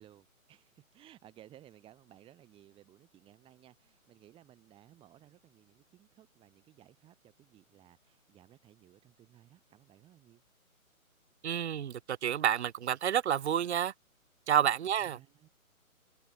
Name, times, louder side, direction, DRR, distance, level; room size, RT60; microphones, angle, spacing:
voice 1, 0.0-10.4 14.6-15.5, right 12 dB, 10° right, 5.3 m, -59 dB
voice 2, 11.4-13.9 14.5-15.2, right 9 dB, 55° right, 0.5 m, -29 dB
open air
figure-of-eight pair, 150°, 43 cm